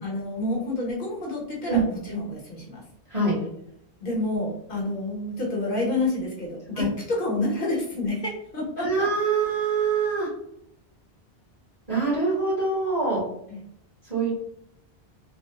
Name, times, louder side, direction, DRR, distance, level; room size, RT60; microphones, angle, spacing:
voice 1, 0.0-2.8 4.0-9.1 13.5-13.6, left 2 dB, 55° left, -3 dB, 1.1 m, -29 dB
voice 2, 8.8-10.3 11.9-13.2 14.1-14.3, right 4 dB, 35° right, -6 dB, 1.1 m, -24 dB
3.6 x 2.0 x 2.8 m, 0.76 s
omnidirectional pair, 1.1 m